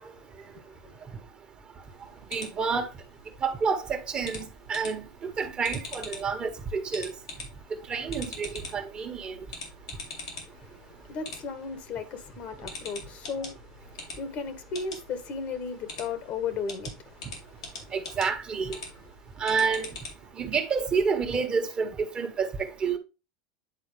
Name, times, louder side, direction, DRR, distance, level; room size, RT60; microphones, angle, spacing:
voice 1, 0.5-1.2 10.5-17.9 18.7-18.9, left 5 dB, 50° left, 1.5 m, -36 dB
sound 1, 1.8-20.3, left 3 dB, 90° left, 2.5 m, -44 dB
voice 2, 2.3-2.9 3.4-5.1 5.4-7.1 7.9-9.3 17.9-18.8 19.4-19.9 20.4-23.0, right 5 dB, 35° right, 1.6 m, -29 dB
9.8 x 4.2 x 3.3 m
hypercardioid pair, 85°, 3 cm